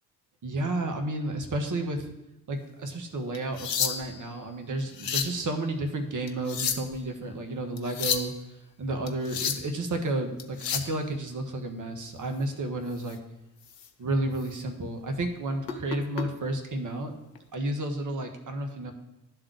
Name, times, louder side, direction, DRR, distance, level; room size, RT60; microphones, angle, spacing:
voice 1, 0.4-2.1 2.5-8.3 8.8-13.2 14.0-17.2 17.5-18.9, right 2 dB, 40° right, 5 dB, 1.6 m, -31 dB
sound 1, 3.3-4.2 4.8-5.4 6.3-7.0 7.8-8.3 9.1-9.7 10.4-10.9 13.0-13.1 13.7-13.9 14.3-14.5 15.7-16.2 17.3-17.5, left 7 dB, 90° left, 0.6 m, -31 dB
11.0 x 3.9 x 6.3 m, 0.90 s
figure-of-eight pair, 45°, 47 cm